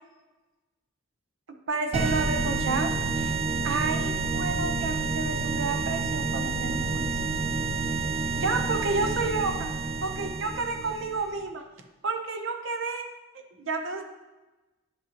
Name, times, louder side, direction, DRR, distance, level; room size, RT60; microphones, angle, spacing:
voice 1, 1.7-2.9 3.6-7.1 8.3-9.7 10.0-11.6 12.0-13.1 13.5-14.0, right 3 dB, 65° right, 5 dB, 0.8 m, -30 dB
sound 1, 1.9-11.3, right 4 dB, 30° right, 0.5 m, -29 dB
10.5 x 5.3 x 2.9 m, 1.1 s
head